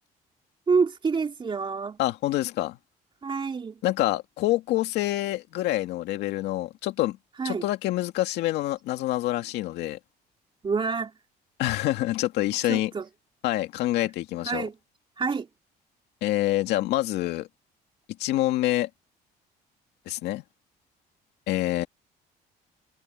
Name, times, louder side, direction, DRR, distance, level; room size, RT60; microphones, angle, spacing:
voice 1, 0.7-2.0 3.2-3.7 7.4-7.6 10.6-11.1 12.7-13.1 14.4-14.7 15.2-15.5, right 5 dB, 30° right, 3.2 m, -27 dB
voice 2, 2.0-2.8 3.8-7.2 7.4-10.0 11.6-12.9 13.4-14.7 16.2-17.5 18.2-18.9 20.1-20.4 21.5-21.9, left 16 dB, 85° left, 2.2 m, -26 dB
cardioid pair, 110°, 17 cm